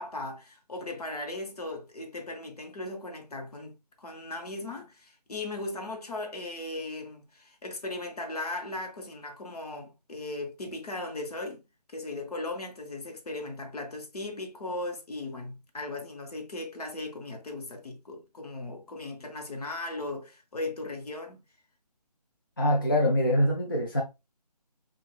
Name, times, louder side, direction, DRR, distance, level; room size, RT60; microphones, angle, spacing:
voice 1, 0.0-11.6 11.9-21.4, left 2 dB, 65° left, 1.0 m, -37 dB
voice 2, 22.6-24.0, left 1 dB, 35° left, 0.4 m, -24 dB
4.6 x 2.3 x 2.4 m
figure-of-eight pair, 175°, 21 cm